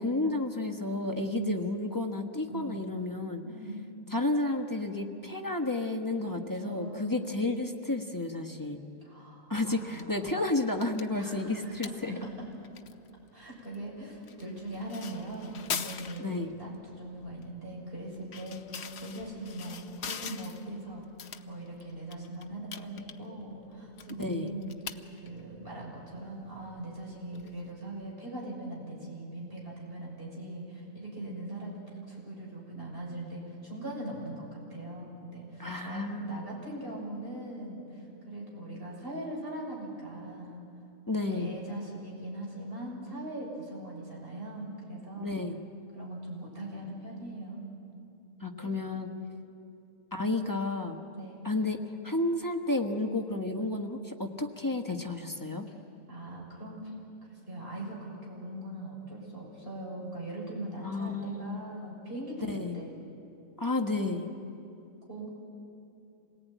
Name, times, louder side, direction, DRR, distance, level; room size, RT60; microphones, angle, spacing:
voice 1, 0.0-3.4 4.1-8.8 9.5-12.3 16.2-16.5 24.2-24.5 35.6-36.5 41.1-41.5 45.2-45.6 48.4-49.1 50.1-51.0 51.4-55.6 60.8-61.7 62.5-62.8 63.6-64.3, left 2 dB, 15° left, 2 dB, 1.3 m, -31 dB
voice 2, 1.2-1.6 2.5-2.9 3.4-3.8 6.5-7.2 9.0-10.3 11.2-12.5 13.3-21.0 21.4-31.8 32.1-34.4 34.7-40.6 41.2-45.4 45.9-47.7 48.6-48.8 50.2-50.6 51.1-51.5 56.1-56.9 57.3-62.5 62.7-62.9 65.1-65.3, right 1 dB, 45° right, -4 dB, 7.0 m, -41 dB
sound 1, 9.7-28.1, left 7 dB, 55° left, 1.1 m, -45 dB
27.0 x 18.5 x 9.3 m, 2.8 s
omnidirectional pair, 1.4 m